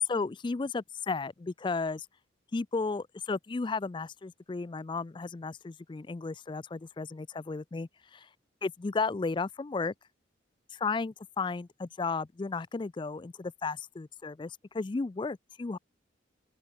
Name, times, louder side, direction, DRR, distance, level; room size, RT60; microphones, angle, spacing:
voice 1, 0.0-2.1 2.5-8.3 8.6-9.9 10.7-15.8, left 4 dB, 25° left, 0.3 m, -34 dB
open air
head